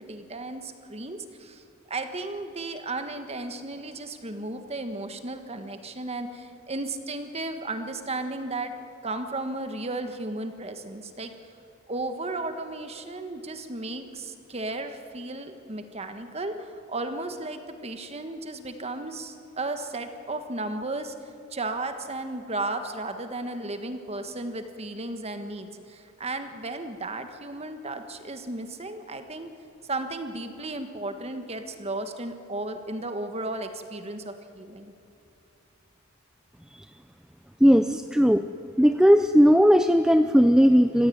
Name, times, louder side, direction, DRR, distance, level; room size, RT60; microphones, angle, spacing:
voice 1, 0.0-8.7 9.0-11.3 11.9-21.1 21.5-29.5 29.9-34.9, right 2 dB, 30° right, 7 dB, 1.6 m, -34 dB
voice 2, 37.6-38.5 38.8-41.1, equal, 5° right, 8 dB, 0.5 m, -17 dB
25.5 x 16.0 x 9.4 m, 2.8 s
head